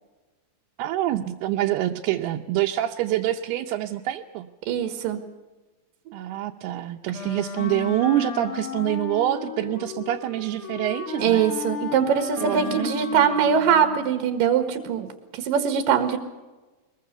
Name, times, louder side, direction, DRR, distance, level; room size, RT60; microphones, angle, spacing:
voice 1, 0.8-4.5 6.1-11.5 12.4-13.1, right 13 dB, 90° right, 2 dB, 2.8 m, -26 dB
voice 2, 4.7-5.2 11.2-15.1 15.3-16.2, right 7 dB, 65° right, 7 dB, 3.2 m, -22 dB
Wind instrument woodwind instrument, 7.1-14.3, left 7 dB, 50° left, 1.8 m, -35 dB
22.5 x 21.5 x 6.8 m, 1.2 s
omnidirectional pair, 4.5 m